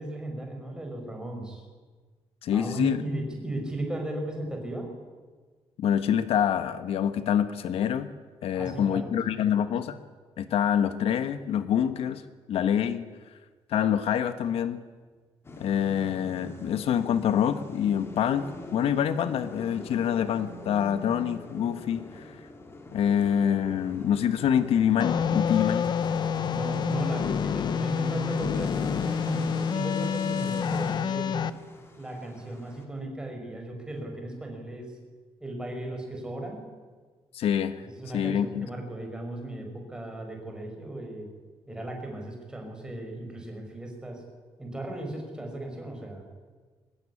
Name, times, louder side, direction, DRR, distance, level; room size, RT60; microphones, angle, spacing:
voice 1, 0.0-1.6 2.5-4.9 8.5-9.8 26.5-31.4 32.0-35.0 35.4-36.6 37.8-41.3 41.7-44.2 44.6-46.3, right 1 dB, 10° right, 2 dB, 5.6 m, -36 dB
voice 2, 2.4-3.0 5.8-8.1 8.4-10.0 10.4-12.2 12.5-13.1 13.7-14.8 15.6-22.3 22.9-25.9 37.3-37.8 38.1-38.7, left 9 dB, 75° left, 11 dB, 1.4 m, -26 dB
sound 1, 15.4-32.8, left 1 dB, 25° left, 3.0 m, -42 dB
sound 2, 25.0-31.5, left 7 dB, 45° left, 0.9 m, -28 dB
23.0 x 20.0 x 9.9 m, 1.5 s
cardioid pair, 165°, 10 cm